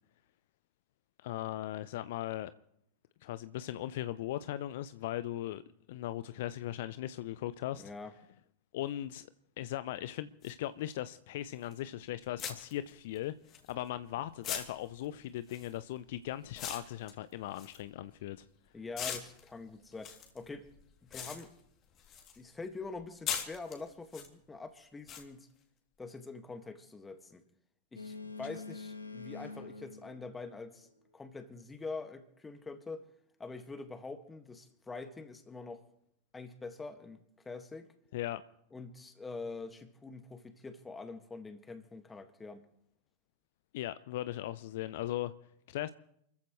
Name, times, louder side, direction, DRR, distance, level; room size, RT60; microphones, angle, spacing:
voice 1, 1.2-2.5 3.2-5.6 5.9-7.8 8.7-9.3 9.6-13.3 13.7-18.5 38.1-38.4 43.7-45.3 45.7-45.9, left 13 dB, 55° left, 0.5 m, -38 dB
voice 2, 7.7-8.1 18.7-20.7 21.0-21.5 22.4-25.5 26.0-27.4 27.9-30.9 31.1-33.1 33.4-35.8 36.3-37.2 37.5-37.9 38.7-42.7, left 3 dB, 15° left, 1.9 m, -45 dB
sound 1, 10.4-10.5 11.7-11.9 12.4-14.0 14.4-18.5 18.9-22.4 22.7-24.3 25.1-25.2, left 8 dB, 35° left, 2.9 m, -41 dB
Boat Water vehicle, 27.9-31.1, left 3 dB, 85° left, 1.8 m, -46 dB
29.0 x 14.5 x 3.2 m
figure-of-eight pair, 90°, 0 cm